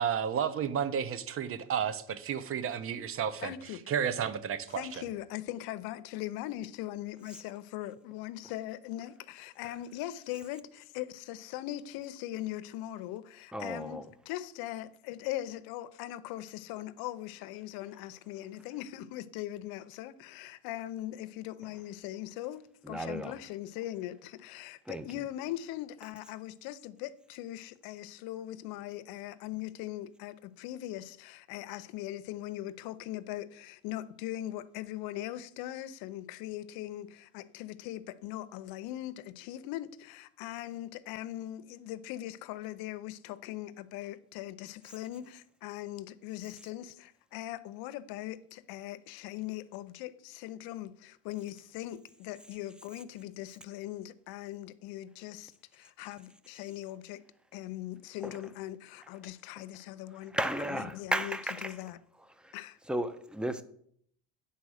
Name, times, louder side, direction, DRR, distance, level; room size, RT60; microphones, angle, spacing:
voice 1, 0.0-3.5 3.9-4.8, right 8 dB, 35° right, 0.8 m, -32 dB
voice 2, 3.4-3.9 4.7-57.2 57.5-60.4 60.7-61.4 61.6-62.0 62.5-62.8, left 14 dB, 70° left, 0.7 m, -40 dB
voice 3, 13.5-14.1 22.8-23.4 24.9-25.1 58.2-58.4 59.6-59.7 60.3-61.8 62.4-62.6 62.9-63.6, right 1 dB, 5° right, 0.5 m, -34 dB
9.4 x 4.2 x 6.3 m
cardioid pair, 120°, 37 cm